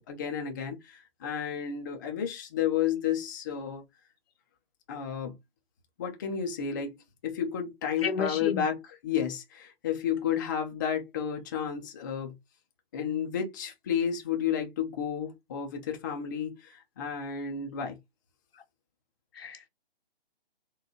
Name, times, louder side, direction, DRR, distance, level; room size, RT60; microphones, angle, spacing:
voice 1, 0.0-3.8 4.9-5.3 6.0-12.3 12.9-18.0, left 8 dB, 20° left, 0.4 m, -32 dB
voice 2, 8.0-8.7 19.3-19.7, left 6 dB, 75° left, 0.6 m, -32 dB
4.0 x 2.3 x 2.8 m
figure-of-eight pair, 140°, 31 cm